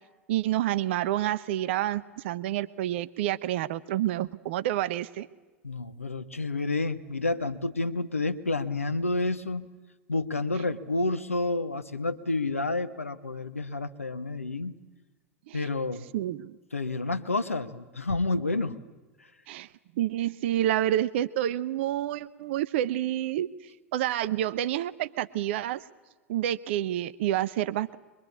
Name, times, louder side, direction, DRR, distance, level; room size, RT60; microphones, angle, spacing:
voice 1, 0.3-5.3 15.5-15.7 16.1-16.6 19.5-19.7 20.0-23.5 23.9-25.8 26.3-28.0, right 13 dB, 60° right, 15 dB, 0.8 m, -28 dB
voice 2, 5.6-9.8 10.1-14.8 15.5-16.1 16.7-18.8, left 2 dB, 90° left, 10 dB, 1.1 m, -29 dB
24.0 x 23.0 x 8.6 m, 1.2 s
figure-of-eight pair, 85°, 7 cm